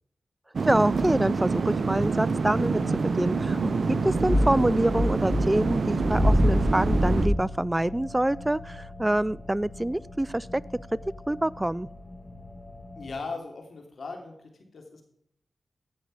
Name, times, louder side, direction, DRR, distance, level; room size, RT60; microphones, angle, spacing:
sound 1, 0.5-7.3, right 4 dB, 70° right, 0.7 m, -27 dB
voice 1, 0.7-10.5 11.3-11.9, right 1 dB, 15° right, 21 dB, 0.3 m, -26 dB
sound 2, 0.9-1.2 1.9-2.3 3.2-3.3 4.0-7.3, left 1 dB, 30° left, 4.5 m, -25 dB
sound 3, 2.5-13.1, left 2 dB, 45° left, 2.8 m, -43 dB
voice 2, 13.0-15.0, left 4 dB, 75° left, 3 dB, 2.9 m, -38 dB
16.0 x 6.6 x 4.8 m, 0.71 s
cardioid pair, 55°, 0 cm